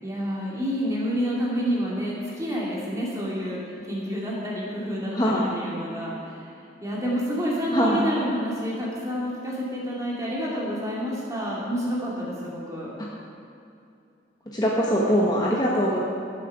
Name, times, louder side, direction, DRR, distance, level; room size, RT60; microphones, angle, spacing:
voice 1, 0.0-6.5 6.8-12.9, equal, 20° right, -5 dB, 2.6 m, -29 dB
voice 2, 5.1-5.5 7.7-8.1 14.5-16.0, equal, 20° left, -4 dB, 1.1 m, -22 dB
16.5 x 7.5 x 4.9 m, 2.5 s
head